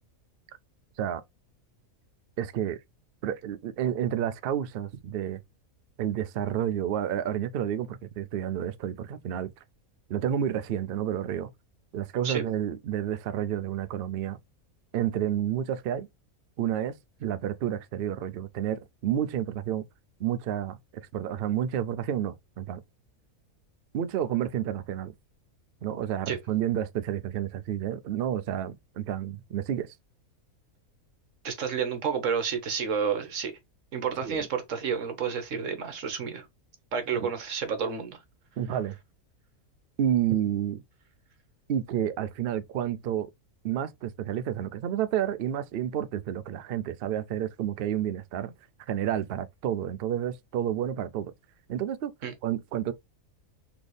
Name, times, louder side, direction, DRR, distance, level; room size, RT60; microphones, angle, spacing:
voice 1, 2.4-2.8 3.2-5.4 6.0-9.5 10.1-11.5 11.9-14.4 14.9-16.1 16.6-17.0 17.2-19.9 20.2-22.8 23.9-25.1 25.8-29.9 34.2-34.4 37.2-37.3 38.6-39.0 40.0-40.8 41.7-43.3 43.6-48.5 48.9-51.3 51.7-52.1 52.4-52.9, right 10 dB, 85° right, 0.5 m, -30 dB
voice 2, 31.4-33.5 33.9-36.5 36.9-38.2 52.2-52.3, right 6 dB, 60° right, 1.4 m, -30 dB
4.1 x 3.4 x 3.2 m
omnidirectional pair, 1.5 m